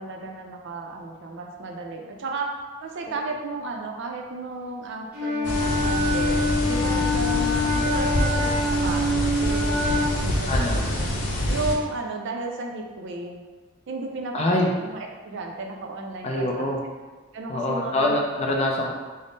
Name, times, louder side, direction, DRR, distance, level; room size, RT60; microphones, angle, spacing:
voice 1, 0.0-2.5 2.8-11.1 11.5-13.4 13.9-16.9 17.3-18.1, right 3 dB, 55° right, 2 dB, 0.4 m, -34 dB
Wind instrument woodwind instrument, 5.1-10.3, left 1 dB, 5° right, 0.8 m, -25 dB
sound 1, 5.4-11.8, left 1 dB, 80° left, 0.6 m, -26 dB
voice 2, 10.5-10.9 14.3-14.7 16.2-16.8 17.5-18.9, left 1 dB, 30° left, 0 dB, 0.4 m, -24 dB
3.5 x 2.0 x 3.8 m, 1.3 s
head